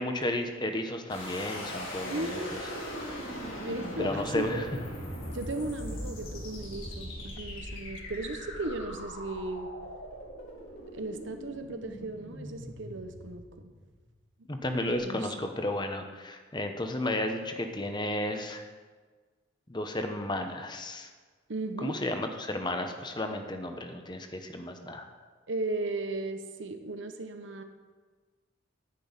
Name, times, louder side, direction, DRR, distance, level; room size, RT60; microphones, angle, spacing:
voice 1, 0.0-2.6 4.0-4.7 14.5-18.6 19.7-21.1 21.8-25.1, left 1 dB, 20° left, 6 dB, 0.9 m, -33 dB
sound 1, 1.1-14.0, equal, 85° left, 3.9 m, -40 dB
voice 2, 2.0-2.6 3.6-4.7 5.3-9.7 10.9-13.7 15.0-15.3 21.5-21.9 25.5-27.6, right 2 dB, 70° right, 7 dB, 1.0 m, -36 dB
10.5 x 6.1 x 8.9 m, 1.4 s
head